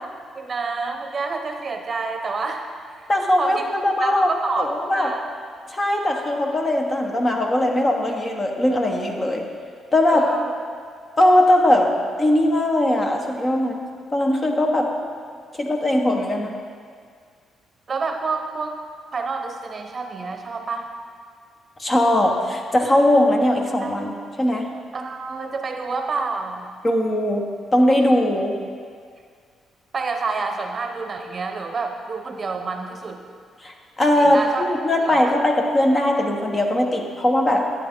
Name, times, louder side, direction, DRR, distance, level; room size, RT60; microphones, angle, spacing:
voice 1, 0.4-2.6 3.0-3.1 3.4-3.7 4.0-4.7 4.9-5.2 10.1-10.5 17.9-18.8 19.1-20.9 23.8-23.9 24.9-26.7 29.9-33.2 34.2-34.6 35.0-35.3, right 4 dB, 40° right, 4 dB, 0.8 m, -28 dB
voice 2, 3.1-4.3 4.6-5.1 5.7-9.4 9.9-10.3 11.2-11.9 12.2-13.8 14.1-14.9 15.6-16.5 21.8-24.7 26.8-28.5 33.6-37.7, left 1 dB, 30° left, 2 dB, 1.3 m, -20 dB
11.5 x 9.3 x 3.8 m, 2.1 s
cardioid pair, 90°, 0 cm